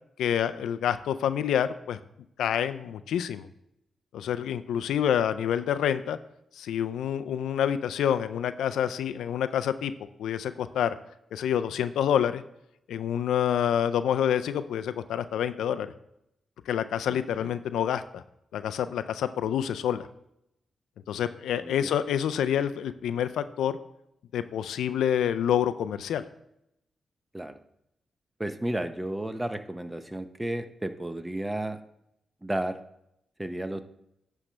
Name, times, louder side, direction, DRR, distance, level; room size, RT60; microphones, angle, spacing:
voice 1, 0.2-2.0 2.4-3.5 4.1-6.2 6.6-9.9 10.2-11.0 11.3-12.4 12.9-15.9 16.7-18.2 18.5-20.1 21.1-23.8 24.3-26.2, left 9 dB, 85° left, 12 dB, 0.3 m, -27 dB
voice 2, 17.1-17.5 21.6-21.9 27.3-27.6 28.4-31.8 32.4-32.8 33.4-33.8, right 1 dB, 15° right, 9 dB, 0.8 m, -33 dB
9.8 x 3.3 x 5.2 m, 0.80 s
supercardioid pair, 50°, 0 cm